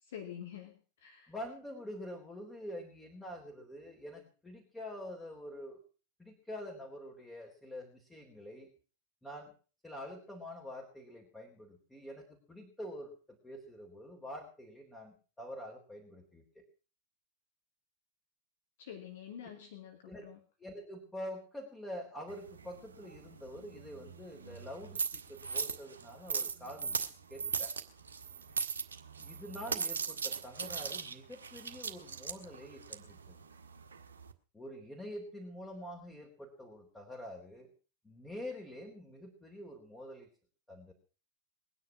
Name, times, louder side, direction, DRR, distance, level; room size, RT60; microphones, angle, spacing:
voice 1, 0.0-1.3 18.8-20.4, left 9 dB, 60° left, 4 dB, 2.5 m, -47 dB
voice 2, 1.3-5.8 6.2-8.7 9.2-9.5 9.8-16.7 20.0-20.3 20.6-27.0 27.3-27.7 29.2-33.4 34.5-37.7 38.0-40.3 40.7-40.9, left 1 dB, 10° left, 0 dB, 3.7 m, -46 dB
sound 1, 22.3-34.3, right 5 dB, 70° right, 1.5 m, -39 dB
21.5 x 9.9 x 6.1 m, 0.39 s
figure-of-eight pair, 90°, 0 cm